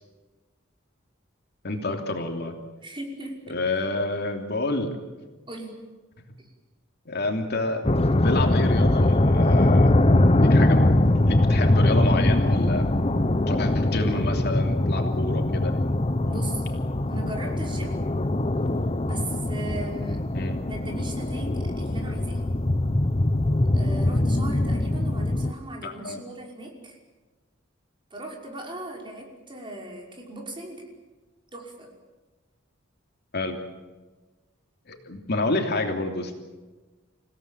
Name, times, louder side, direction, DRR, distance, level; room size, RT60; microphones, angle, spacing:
voice 1, 1.6-2.5 3.5-4.9 7.1-9.9 10.4-11.0 11.3-12.9 13.5-15.7 20.3-20.6 25.8-26.2 33.3-33.6 34.9-36.4, left 2 dB, 55° left, 4 dB, 3.0 m, -29 dB
voice 2, 2.8-3.4 5.5-5.9 6.4-6.5 16.3-16.7 17.1-18.0 19.1-20.3 20.6-22.4 23.7-27.0 28.1-30.9 31.5-31.9, right 1 dB, 25° right, 0 dB, 5.6 m, -38 dB
sound 1, 7.8-25.5, left 1 dB, 30° left, 0.9 m, -22 dB
29.0 x 17.5 x 9.2 m, 1.3 s
head